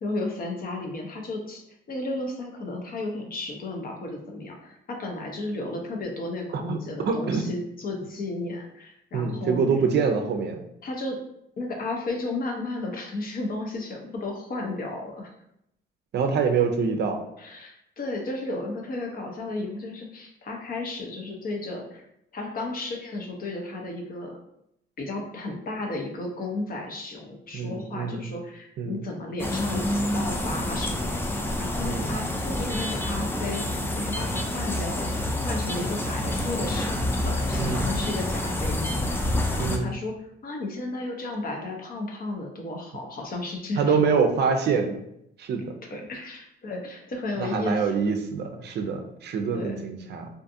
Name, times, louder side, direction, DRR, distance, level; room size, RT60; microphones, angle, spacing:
voice 1, 0.0-1.6 1.9-9.6 10.8-11.2 11.6-15.3 17.4-22.0 22.3-24.3 25.0-35.1 35.4-40.1 40.4-44.0 45.9-48.1 49.5-49.8, left 2 dB, 45° left, 1 dB, 0.7 m, -33 dB
voice 2, 7.1-7.5 9.1-10.6 16.1-17.2 27.5-28.3 28.8-29.0 31.8-32.2 37.6-37.9 39.6-39.9 43.8-45.0 45.4-45.8 47.4-50.3, right 5 dB, 60° right, 5 dB, 0.4 m, -25 dB
sound 1, 29.4-39.8, left 1 dB, 10° left, 0.3 m, -28 dB
2.5 x 2.4 x 2.6 m, 0.77 s
cardioid pair, 90°, 20 cm